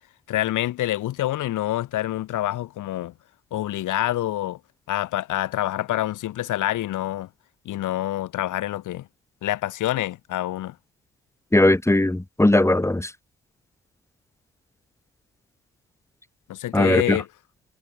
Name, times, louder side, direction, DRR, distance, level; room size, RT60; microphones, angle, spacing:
voice 1, 0.3-3.1 3.5-4.6 4.9-7.3 7.6-9.1 9.4-10.8 16.5-17.3, left 14 dB, 85° left, 4.1 m, -26 dB
voice 2, 11.5-13.1 16.7-17.2, left 1 dB, 10° left, 3.6 m, -18 dB
cardioid pair, 90°, 30 cm